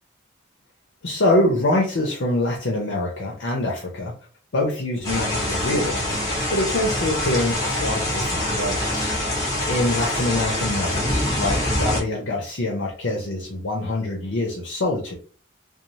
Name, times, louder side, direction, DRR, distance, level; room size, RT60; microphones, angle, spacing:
voice 1, 1.0-4.1 4.5-6.2 6.5-9.1 9.7-15.1, left 1 dB, 70° left, -1 dB, 0.7 m, -25 dB
sound 1, 5.0-12.0, left 1 dB, 20° left, 0.9 m, -25 dB
2.6 x 2.0 x 3.0 m, 0.37 s
head